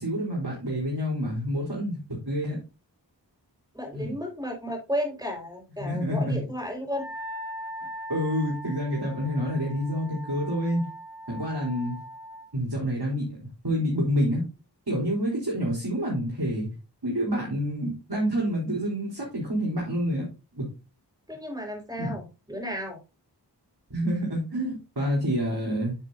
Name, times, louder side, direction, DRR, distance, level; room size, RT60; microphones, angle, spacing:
voice 1, 0.0-2.6 3.9-4.1 5.8-6.4 8.1-10.8 11.3-12.0 12.5-14.4 14.9-16.7 17.0-20.3 20.5-20.7 22.0-22.1 23.9-26.0, equal, 60° right, -4 dB, 3.8 m, -28 dB
voice 2, 3.7-7.1 21.3-23.0, equal, 10° right, 1 dB, 4.8 m, -33 dB
Wind instrument woodwind instrument, 6.9-12.5, equal, 55° left, 1.9 m, -40 dB
9.4 x 7.6 x 2.6 m, 0.30 s
wide cardioid pair, 45°, 42 cm